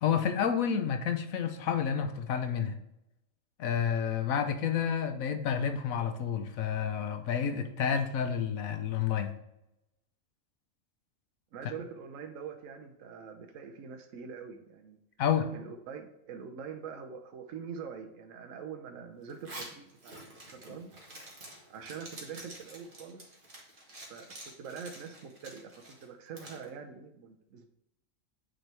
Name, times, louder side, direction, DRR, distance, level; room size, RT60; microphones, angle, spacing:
voice 1, 0.0-2.8 3.6-9.3 15.2-15.5, left 7 dB, 85° left, 7 dB, 1.2 m, -30 dB
voice 2, 11.5-15.0 15.5-20.9 21.7-23.3 24.1-27.7, right 6 dB, 75° right, 4 dB, 1.1 m, -44 dB
Zipper (clothing), 19.3-26.7, right 1 dB, 40° right, 1.7 m, -48 dB
9.1 x 4.4 x 3.3 m, 0.85 s
omnidirectional pair, 1.4 m